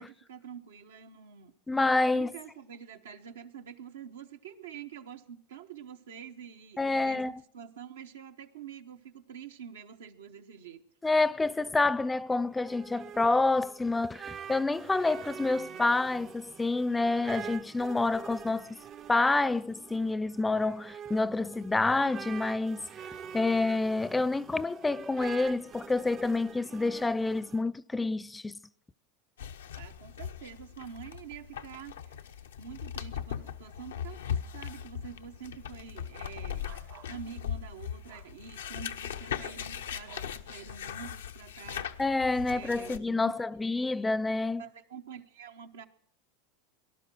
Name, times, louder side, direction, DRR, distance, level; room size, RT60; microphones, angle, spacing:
voice 1, 0.0-1.5 2.1-10.8 29.8-32.2 32.6-36.7 37.1-42.0 42.5-43.3 43.8-44.0 44.6-45.9, right 7 dB, 85° right, 0.9 m, -46 dB
voice 2, 1.7-2.3 6.8-7.3 11.0-18.8 19.1-22.9 23.3-28.6 42.0-44.6, left 3 dB, 10° left, 0.5 m, -28 dB
sound 1, 12.3-27.6, right 8 dB, 40° right, 0.5 m, -46 dB
sound 2, 29.4-43.0, left 9 dB, 90° left, 0.7 m, -39 dB
sound 3, 36.6-37.2 38.1-38.3 40.0-40.3, right 10 dB, 65° right, 2.0 m, -52 dB
18.5 x 11.5 x 6.1 m
hypercardioid pair, 95°, 0 cm